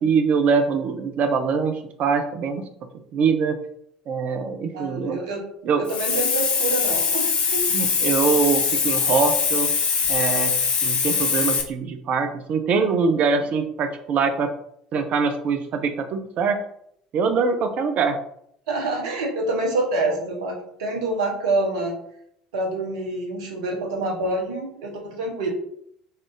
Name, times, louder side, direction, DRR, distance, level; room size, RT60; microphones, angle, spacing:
voice 1, 0.0-2.6 3.1-3.6 4.1-5.2 5.6-5.9 7.7-9.7 10.1-10.5 10.8-14.5 14.9-16.6 17.1-18.2, right 5 dB, 45° right, 7 dB, 0.5 m, -23 dB
voice 2, 4.7-5.4 5.8-7.7 18.7-22.0 22.5-25.5, right 2 dB, 70° right, 1 dB, 0.9 m, -26 dB
Hiss, 5.9-11.6, left 6 dB, 40° left, 0.6 m, -22 dB
3.1 x 2.4 x 3.7 m, 0.70 s
figure-of-eight pair, 65°, 3 cm